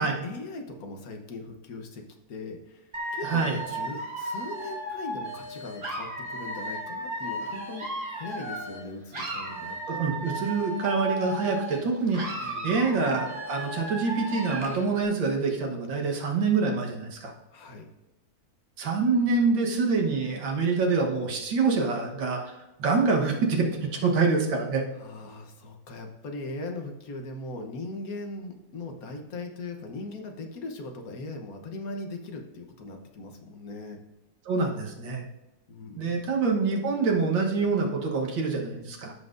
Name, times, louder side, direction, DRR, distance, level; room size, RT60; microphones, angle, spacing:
voice 1, 0.0-10.1 12.4-12.9 17.5-17.9 25.0-34.0 35.7-36.3, left 2 dB, 55° left, 4 dB, 1.4 m, -39 dB
Dog / Alarm, 2.9-8.8 9.1-11.8 12.1-14.9, right 1 dB, 30° right, 1.5 m, -35 dB
voice 2, 3.2-3.6 9.9-17.3 18.8-22.5 22.8-24.8 34.5-35.2 36.0-39.1, right 4 dB, 90° right, 1 dB, 2.0 m, -26 dB
14.0 x 5.7 x 2.6 m, 1.0 s
omnidirectional pair, 2.0 m